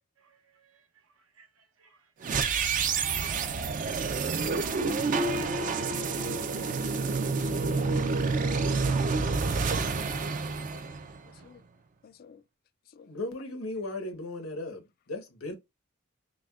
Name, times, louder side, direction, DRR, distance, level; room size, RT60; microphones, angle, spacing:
voice 1, 0.2-7.0 11.2-11.5, right 5 dB, 80° right, 1.0 m, -62 dB
sound 1, 2.2-11.4, right 4 dB, 40° right, 0.4 m, -28 dB
voice 2, 9.7-11.0 11.4-11.6 12.0-12.4 12.9-13.1, left 6 dB, 45° left, 0.3 m, -55 dB
voice 3, 13.1-15.5, left 2 dB, 90° left, 1.1 m, -36 dB
5.8 x 2.2 x 2.4 m
head